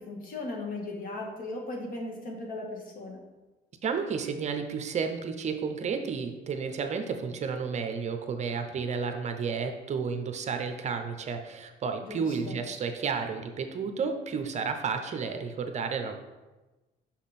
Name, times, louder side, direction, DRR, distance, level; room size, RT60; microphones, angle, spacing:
voice 1, 0.0-3.2 12.0-12.6, left 2 dB, 55° left, 0 dB, 1.7 m, -37 dB
voice 2, 3.8-16.2, right 5 dB, 40° right, 6 dB, 0.7 m, -32 dB
6.1 x 5.8 x 4.2 m, 1.1 s
cardioid pair, 110°, 17 cm